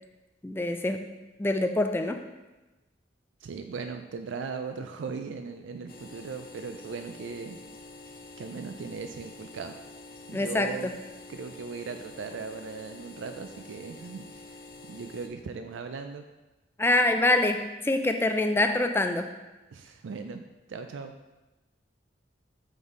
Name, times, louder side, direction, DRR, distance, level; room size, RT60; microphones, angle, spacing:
voice 1, 0.4-1.1 1.4-2.2 10.3-10.9 16.8-19.3, left 2 dB, 10° left, 6 dB, 0.3 m, -25 dB
voice 2, 3.4-7.6 8.4-9.8 10.3-10.9 11.3-14.5 14.9-16.2 19.7-20.4 20.7-21.1, right 5 dB, 85° right, 7 dB, 0.4 m, -38 dB
sound 1, 5.9-15.3, left 2 dB, 50° left, 0.6 m, -47 dB
6.1 x 5.3 x 3.7 m, 1.1 s
head